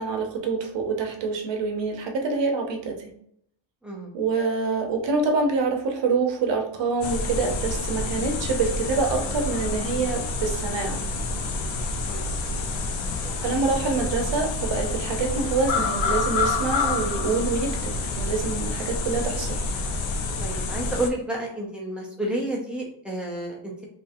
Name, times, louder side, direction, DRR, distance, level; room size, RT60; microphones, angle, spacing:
voice 1, 0.0-3.1 4.1-11.0 13.4-19.6, right 4 dB, 60° right, 3 dB, 0.9 m, -26 dB
voice 2, 3.8-4.1 12.1-12.4 13.0-13.3 20.4-23.8, right 1 dB, ahead, -3 dB, 0.7 m, -31 dB
sound 1, 7.0-21.1, left 3 dB, 70° left, 0.7 m, -28 dB
3.8 x 2.9 x 2.6 m, 0.68 s
wide cardioid pair, 175°, 48 cm